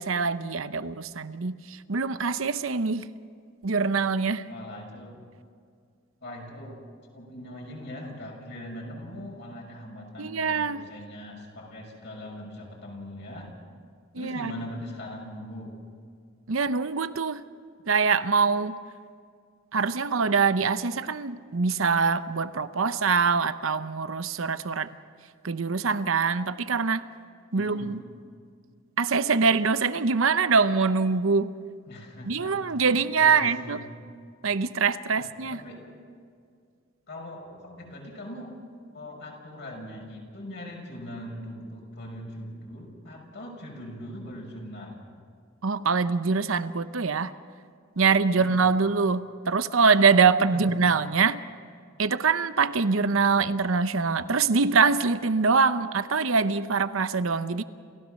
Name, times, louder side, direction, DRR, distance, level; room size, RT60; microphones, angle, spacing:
voice 1, 0.0-3.1 3.6-4.5 10.2-10.9 14.1-14.5 16.5-17.4 17.9-18.8 19.7-24.9 25.4-27.1 27.5-28.0 29.0-31.5 32.3-33.8 34.4-35.6 45.6-47.3 48.0-51.4 52.0-57.6, right 5 dB, 80° right, 0.8 m, -24 dB
voice 2, 4.5-5.1 6.2-6.8 7.1-13.5 14.2-15.7 27.5-27.9 31.9-32.6 33.2-33.8 35.5-35.8 37.1-38.5 38.9-45.0 48.3-48.6 50.5-50.7, left 1 dB, 60° left, 6.2 m, -40 dB
28.5 x 16.0 x 6.5 m
head